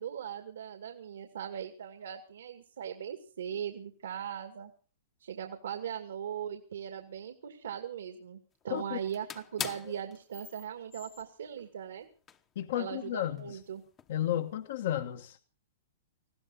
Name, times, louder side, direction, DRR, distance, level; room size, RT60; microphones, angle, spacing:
voice 1, 0.0-4.7 5.2-8.4 8.6-12.1 12.7-13.8, right 9 dB, 80° right, 2.3 m, -39 dB
sound 1, 8.6-8.8 9.1-11.8 12.3-12.4 12.8-14.4 15.0-15.3, left 8 dB, 20° left, 1.0 m, -43 dB
voice 2, 12.5-13.6 14.1-15.4, left 12 dB, 60° left, 1.4 m, -33 dB
20.0 x 16.0 x 4.1 m
hypercardioid pair, 150°, 0 cm